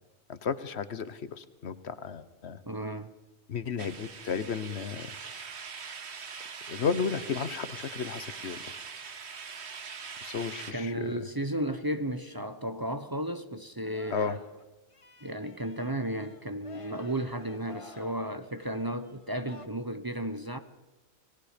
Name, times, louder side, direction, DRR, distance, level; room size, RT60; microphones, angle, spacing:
voice 1, 0.3-2.6 3.5-5.1 6.7-8.6 9.8-9.9 10.2-11.1 14.1-14.4, left 6 dB, 75° left, 1.3 m, -33 dB
voice 2, 2.7-3.1 10.7-14.4 15.2-20.6, right 1 dB, 20° right, 0.9 m, -34 dB
sound 1, 3.8-10.7, right 5 dB, 80° right, 1.5 m, -42 dB
Singing, 13.8-14.6 14.9-19.7, left 3 dB, 30° left, 1.3 m, -52 dB
28.0 x 19.0 x 5.2 m
omnidirectional pair, 1.1 m